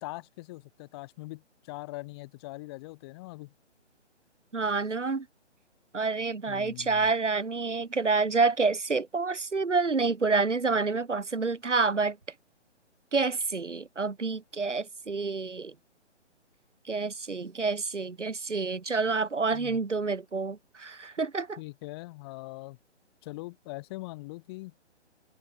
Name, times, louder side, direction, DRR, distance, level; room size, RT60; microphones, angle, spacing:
voice 1, 0.0-3.5 6.5-7.1 19.5-19.8 21.6-22.8 23.2-24.7, left 22 dB, 20° left, 2.3 m, -42 dB
voice 2, 4.5-5.3 5.9-12.2 13.1-15.7 16.9-21.6, right 4 dB, 85° right, 1.1 m, -28 dB
figure-of-eight pair, 140°, 35 cm